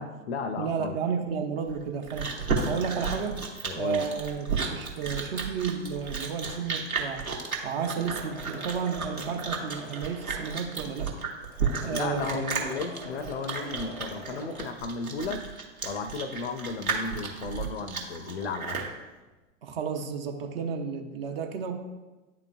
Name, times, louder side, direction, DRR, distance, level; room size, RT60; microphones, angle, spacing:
voice 1, 0.0-1.0 3.6-4.1 11.9-15.5 15.8-18.9, left 4 dB, 50° left, 10 dB, 0.5 m, -34 dB
voice 2, 0.6-2.3 2.6-3.4 3.8-7.3 7.6-11.1 11.8-12.6 19.6-21.7, right 6 dB, 45° right, 4 dB, 0.8 m, -32 dB
Chewing mastication, 1.7-18.9, right 5 dB, 80° right, 1.1 m, -33 dB
Engine / Mechanisms, 6.0-15.3 15.7-18.0 18.3-19.0, equal, 5° left, 0.6 m, -46 dB
9.7 x 3.9 x 2.4 m, 1.2 s
figure-of-eight pair, 100°, 42 cm